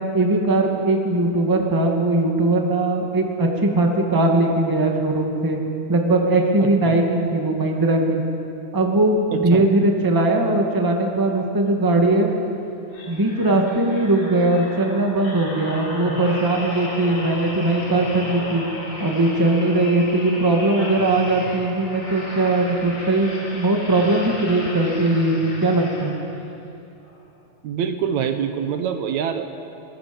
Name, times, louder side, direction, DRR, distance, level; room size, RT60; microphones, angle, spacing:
voice 1, 0.1-5.6 5.9-8.2 8.7-12.3 13.1-18.6 19.0-26.1, right 2 dB, 10° right, 1 dB, 1.7 m, -20 dB
voice 2, 9.3-9.6 27.6-29.4, right 8 dB, 75° right, 7 dB, 2.3 m, -25 dB
sound 1, 12.9-26.5 27.0-27.2, left 1 dB, 50° left, 4.6 m, -34 dB
24.0 x 19.0 x 7.2 m, 2.7 s
omnidirectional pair, 3.4 m